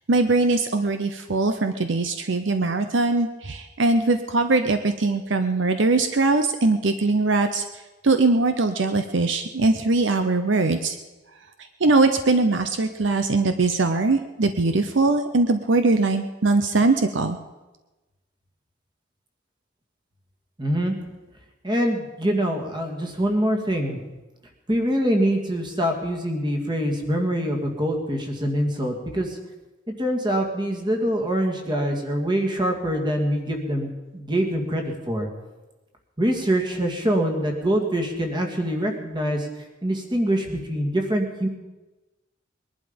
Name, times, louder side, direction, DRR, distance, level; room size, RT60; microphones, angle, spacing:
voice 1, 0.1-7.7 8.0-11.0 11.8-17.4, right 3 dB, 65° right, 8 dB, 0.8 m, -21 dB
voice 2, 20.6-21.0 21.6-24.0 24.7-29.4 30.0-35.3 36.2-39.5 39.8-41.5, equal, 25° right, 3 dB, 2.0 m, -24 dB
21.0 x 11.5 x 5.2 m, 1.1 s
head